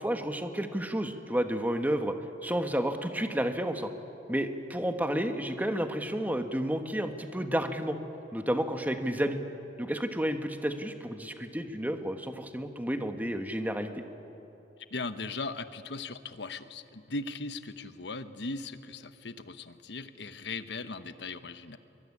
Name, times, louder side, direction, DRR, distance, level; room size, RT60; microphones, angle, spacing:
voice 1, 0.0-2.1 2.4-3.9 4.3-8.0 8.3-9.4 9.8-14.0, equal, 10° right, 7 dB, 1.3 m, -31 dB
voice 2, 14.8-21.8, left 3 dB, 65° left, 11 dB, 1.1 m, -38 dB
24.5 x 23.0 x 9.8 m, 2.9 s
head